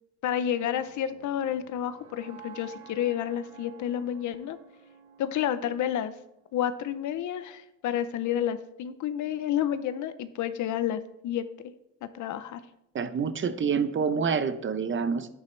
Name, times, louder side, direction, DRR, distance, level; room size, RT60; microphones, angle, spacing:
voice 1, 0.2-4.6 5.2-6.1 6.5-11.4 12.0-12.6, left 10 dB, 75° left, 13 dB, 0.7 m, -30 dB
sound 1, 0.6-6.7, right 8 dB, 85° right, 2.8 m, -52 dB
voice 2, 12.9-15.3, right 6 dB, 40° right, 11 dB, 0.8 m, -27 dB
9.8 x 9.5 x 3.3 m, 0.82 s
cardioid pair, 90°, 30 cm